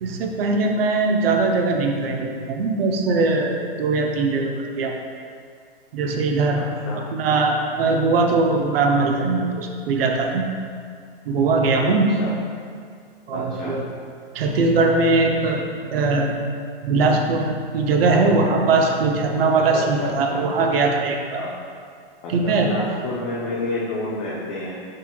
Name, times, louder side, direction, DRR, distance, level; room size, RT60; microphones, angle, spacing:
voice 1, 0.0-4.5 4.8-5.0 5.9-6.6 7.0-10.4 11.3-12.2 13.3-13.8 14.3-15.6 15.9-16.3 16.8-17.5 17.7-21.4 22.3-22.7, right 3 dB, 75° right, 2 dB, 0.6 m, -20 dB
voice 2, 6.6-7.0 11.9-12.3 13.3-13.8 19.7-20.4 21.4-21.5 22.2-24.8, left 2 dB, 30° left, -7 dB, 0.5 m, -30 dB
6.1 x 2.8 x 2.2 m, 2.1 s
hypercardioid pair, 150°, 30 cm